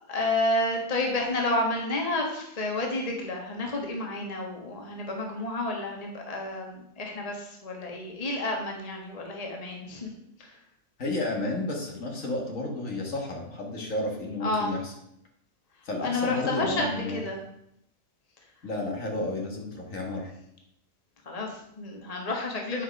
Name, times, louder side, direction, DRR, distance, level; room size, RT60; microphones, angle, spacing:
voice 1, 0.1-10.1 10.4-10.5 14.4-14.7 16.0-17.4 21.2-22.8, left 2 dB, 30° left, 1 dB, 1.4 m, -30 dB
voice 2, 11.0-14.9 15.8-17.2 18.6-20.3, left 2 dB, 70° left, 0 dB, 2.1 m, -32 dB
9.7 x 5.3 x 5.2 m, 0.76 s
omnidirectional pair, 1.5 m